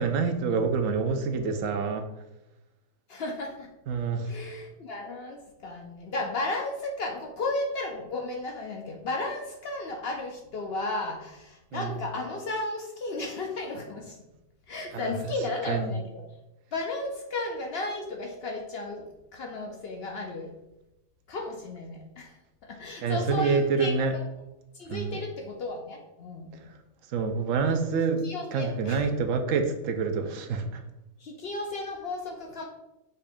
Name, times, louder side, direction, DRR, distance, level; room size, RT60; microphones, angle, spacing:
voice 1, 0.0-2.0 3.9-4.3 11.7-11.9 14.9-15.3 15.7-15.9 23.0-24.2 24.9-25.2 27.1-30.8, right 5 dB, 70° right, 6 dB, 0.9 m, -27 dB
voice 2, 3.1-3.7 4.2-14.2 14.7-16.2 16.7-20.5 21.3-24.2 24.7-26.7 28.2-29.0 31.2-32.7, left 2 dB, 65° left, 2 dB, 0.6 m, -34 dB
5.5 x 2.5 x 3.5 m, 0.93 s
omnidirectional pair, 1.5 m